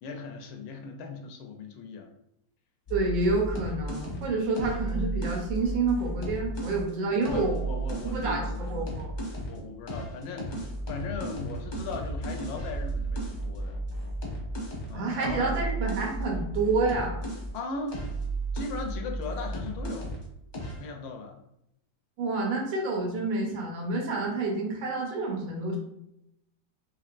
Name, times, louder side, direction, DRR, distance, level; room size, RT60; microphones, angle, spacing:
voice 1, 0.0-2.1 7.1-8.9 9.4-13.8 14.9-15.5 17.5-18.0 18.5-20.2 20.8-21.4, left 4 dB, 85° left, 4 dB, 1.3 m, -38 dB
sound 1, 2.9-6.8 7.2-9.6 9.9-17.6 17.9-20.3 20.5-20.9, right 2 dB, 50° left, 0.5 m, -34 dB
voice 2, 2.9-7.5 8.0-8.4 8.7-9.1 14.9-17.2 22.2-25.8, right 3 dB, 90° right, -1 dB, 1.6 m, -28 dB
4.0 x 2.8 x 2.5 m, 0.81 s
omnidirectional pair, 2.0 m